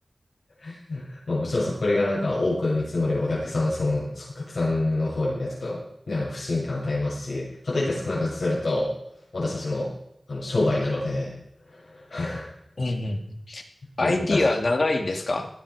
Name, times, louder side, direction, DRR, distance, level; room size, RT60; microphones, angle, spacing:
voice 1, 0.6-8.9 9.3-9.9 10.3-11.3 11.7-12.5 14.0-14.4, left 2 dB, 80° left, -7 dB, 7.3 m, -26 dB
voice 2, 12.8-13.6 14.0-15.5, left 2 dB, 60° left, 6 dB, 2.3 m, -25 dB
18.5 x 10.5 x 4.9 m, 0.77 s
wide cardioid pair, 80°, 0 cm